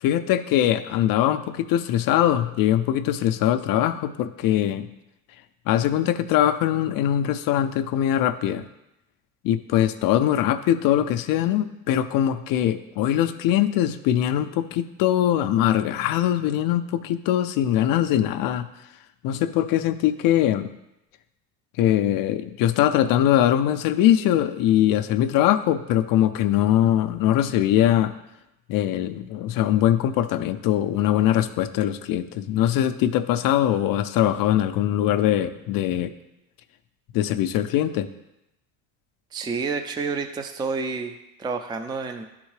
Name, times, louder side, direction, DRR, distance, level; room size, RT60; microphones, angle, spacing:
voice 1, 0.0-4.9 5.7-8.6 9.4-18.7 19.2-20.7 21.8-28.1 28.7-36.1 37.1-38.1, left 11 dB, 55° left, 10 dB, 0.5 m, -22 dB
voice 2, 39.3-42.2, right 4 dB, 10° right, 6 dB, 0.4 m, -29 dB
11.0 x 3.7 x 3.2 m, 0.91 s
hypercardioid pair, 75°, 42 cm